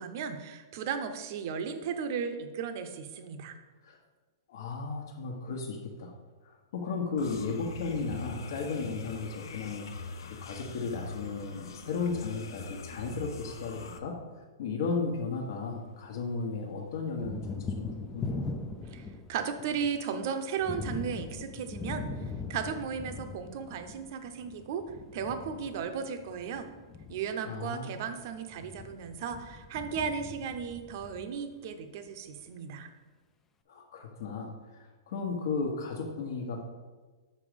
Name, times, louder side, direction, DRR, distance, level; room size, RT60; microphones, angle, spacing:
voice 1, 0.0-3.6 18.9-22.1 22.5-24.8 25.1-26.7 27.1-32.9, right 6 dB, 45° right, 8 dB, 0.7 m, -35 dB
voice 2, 4.5-6.1 6.4-9.9 10.3-14.2 14.6-18.3 27.4-28.0 33.7-36.6, left 4 dB, 60° left, 1 dB, 1.2 m, -35 dB
sound 1, 7.2-14.0, left 4 dB, 75° left, 0.7 m, -43 dB
Thunder, 15.0-16.2 16.5-31.7, left 4 dB, 10° left, 0.4 m, -41 dB
6.2 x 5.3 x 5.2 m, 1.3 s
hypercardioid pair, 160°, 2 cm